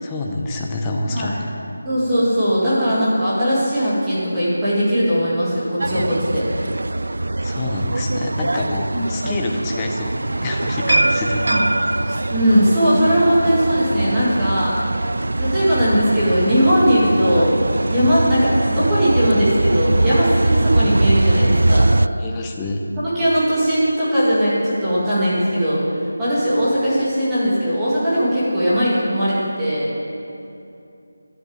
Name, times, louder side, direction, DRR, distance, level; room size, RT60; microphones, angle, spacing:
voice 1, 0.0-1.3 5.8-6.1 7.4-11.5 22.2-22.8, left 2 dB, 10° left, 0 dB, 0.6 m, -27 dB
voice 2, 1.8-6.4 8.9-9.3 11.5-11.6 12.1-14.8 15.4-17.6 17.9-21.9 23.0-25.8 26.2-29.9, equal, 5° right, -12 dB, 2.1 m, -19 dB
sound 1, 5.8-22.1, right 2 dB, 75° right, 0.3 m, -21 dB
11.5 x 7.0 x 8.7 m, 2.6 s
figure-of-eight pair, 180°, 0 cm